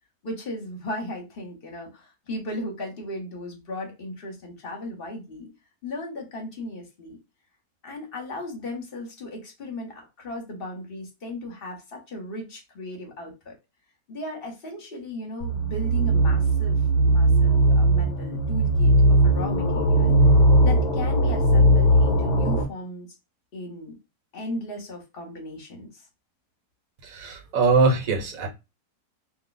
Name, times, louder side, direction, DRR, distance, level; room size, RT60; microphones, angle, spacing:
voice 1, 0.2-5.5 5.8-7.2 7.8-13.5 14.1-16.8 17.0-20.1 20.6-23.1 23.5-23.9 24.3-25.9, left 1 dB, 40° left, 1.1 m, -36 dB
sound 1, 15.4-22.6, right 1 dB, 55° left, 0.9 m, -19 dB
voice 2, 27.0-28.5, right 4 dB, 65° right, 1.2 m, -22 dB
2.7 x 2.3 x 3.9 m
omnidirectional pair, 1.6 m